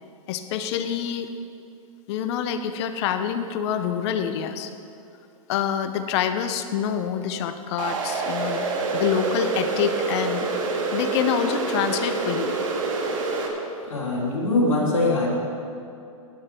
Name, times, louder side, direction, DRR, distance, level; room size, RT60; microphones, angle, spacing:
voice 1, 0.3-1.3 2.1-4.7 5.5-8.7 8.9-10.5 10.9-12.5, left 8 dB, 50° left, 9 dB, 1.0 m, -26 dB
sound 1, 7.8-13.5, right 3 dB, 70° right, 2.2 m, -26 dB
voice 2, 13.9-15.3, left 2 dB, 85° left, -5 dB, 3.1 m, -22 dB
15.5 x 9.9 x 4.5 m, 2.7 s
hypercardioid pair, 115°, 18 cm